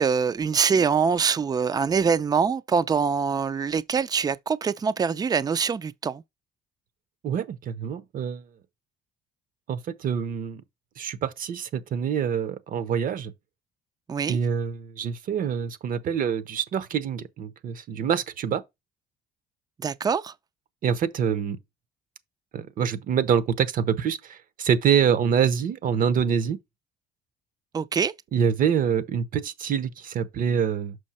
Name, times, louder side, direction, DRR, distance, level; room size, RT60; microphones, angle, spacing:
voice 1, 0.0-6.2 14.1-14.4 19.8-20.3 27.7-28.1, right 6 dB, 25° right, 0.4 m, -24 dB
voice 2, 7.2-8.4 9.7-10.6 11.0-13.3 14.3-18.6 20.8-21.6 22.5-26.6 28.3-31.0, right 7 dB, 55° right, 0.9 m, -25 dB
6.4 x 5.4 x 4.3 m
cardioid pair, 110°, 17 cm